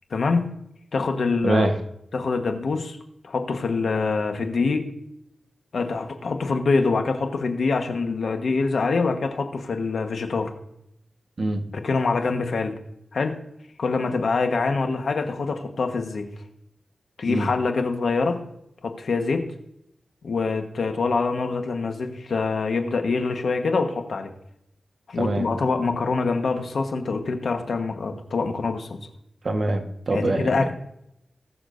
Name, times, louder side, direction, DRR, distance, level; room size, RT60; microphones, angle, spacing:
voice 1, 0.1-0.5 0.9-1.7 2.1-3.0 3.2-4.9 5.7-10.5 11.7-12.8 13.1-13.4 13.8-16.3 17.2-18.5 18.8-19.5 20.2-24.3 25.1-29.0 30.1-30.7, left 4 dB, 75° left, 6 dB, 1.3 m, -25 dB
voice 2, 1.4-1.7 11.4-11.6 17.3-17.5 25.2-25.5 29.4-30.7, right 2 dB, 55° right, 5 dB, 1.3 m, -24 dB
19.5 x 6.9 x 2.6 m, 0.79 s
cardioid pair, 70°, 0 cm